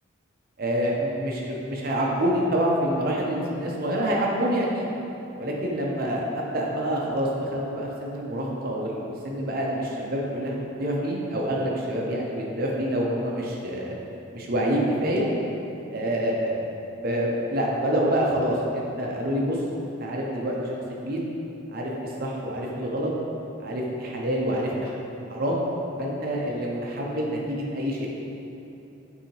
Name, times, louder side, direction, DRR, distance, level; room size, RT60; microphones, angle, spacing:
voice 1, 0.6-4.9 5.4-13.9 14.3-15.3 15.9-16.6 17.0-20.8 21.0-21.2 21.7-23.1 23.6-24.9 25.3-25.6 26.0-28.1, equal, 45° right, -2 dB, 0.6 m, -27 dB
6.5 x 2.8 x 2.9 m, 2.9 s
head